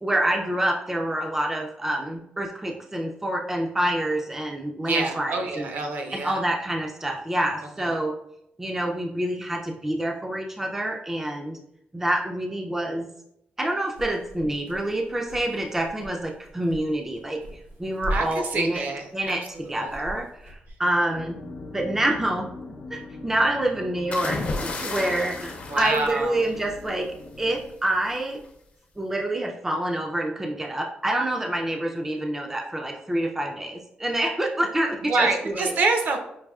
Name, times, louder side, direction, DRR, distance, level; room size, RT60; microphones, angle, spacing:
voice 1, 0.0-5.7 6.1-8.1 8.6-11.6 11.9-13.1 13.6-18.8 19.1-21.4 21.7-22.5 22.9-28.4 29.0-35.7, right 1 dB, 10° right, 1 dB, 0.3 m, -27 dB
voice 2, 4.8-6.4 7.8-7.9 18.1-20.0 25.7-26.5 35.0-36.2, right 3 dB, 55° right, 4 dB, 0.6 m, -27 dB
sound 1, 13.9-20.7, right 1 dB, 85° right, 0.9 m, -39 dB
sound 2, 21.1-27.7, left 2 dB, 80° left, 0.7 m, -42 dB
sound 3, 24.1-26.9 28.1-28.4, left 3 dB, 40° left, 0.6 m, -32 dB
5.3 x 2.6 x 2.3 m, 0.78 s
wide cardioid pair, 145°, 4 cm